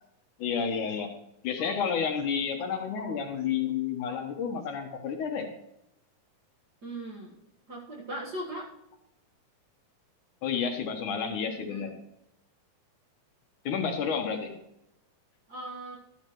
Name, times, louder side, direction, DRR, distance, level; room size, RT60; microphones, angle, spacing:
voice 1, 0.4-1.1 1.4-5.5 10.4-11.9 13.7-14.6, left 6 dB, 65° left, 4 dB, 2.4 m, -30 dB
voice 2, 6.8-7.4 7.7-8.7 11.7-11.9 15.5-16.0, right 1 dB, 50° right, -2 dB, 1.2 m, -38 dB
13.0 x 12.5 x 3.1 m, 0.84 s
omnidirectional pair, 4.1 m